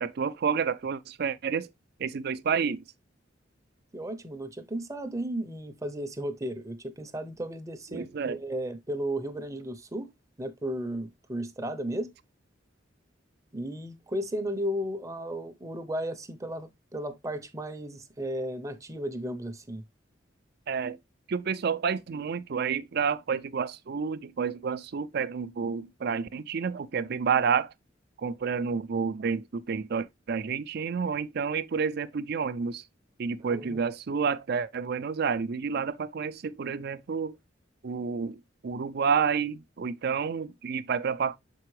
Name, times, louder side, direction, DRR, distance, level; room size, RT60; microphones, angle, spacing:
voice 1, 0.0-1.7 2.0-2.8 7.9-8.4 20.7-21.0 21.3-27.7 28.2-32.8 33.2-37.4 37.8-41.4, right 6 dB, 55° right, 0.4 m, -29 dB
voice 2, 3.9-10.1 10.4-12.1 13.5-19.8 33.5-33.8, right 1 dB, 15° right, 0.6 m, -34 dB
6.7 x 4.5 x 3.1 m
head